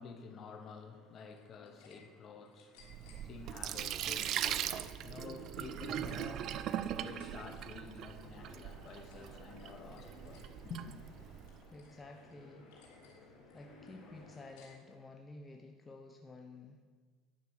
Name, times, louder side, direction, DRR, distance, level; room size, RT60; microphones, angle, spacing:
voice 1, 0.0-10.9, left 5 dB, 40° left, 1.2 m, -50 dB
sound 1, 1.1-2.0 2.3-3.2 3.9-4.9 5.3-7.6 7.9-8.2 8.6-9.3 9.6-10.4 10.9-12.0 12.3-12.4 12.7-13.2 13.5-15.0, left 4 dB, 80° left, 3.1 m, -63 dB
Sink (filling or washing), 2.8-11.6, right 10 dB, 50° right, 0.4 m, -40 dB
sound 2, 5.0-14.5, left 2 dB, 60° left, 3.0 m, -58 dB
voice 2, 11.7-12.7 13.2-16.8, left 2 dB, 20° left, 0.8 m, -52 dB
10.0 x 6.0 x 6.3 m
supercardioid pair, 110°, 0 cm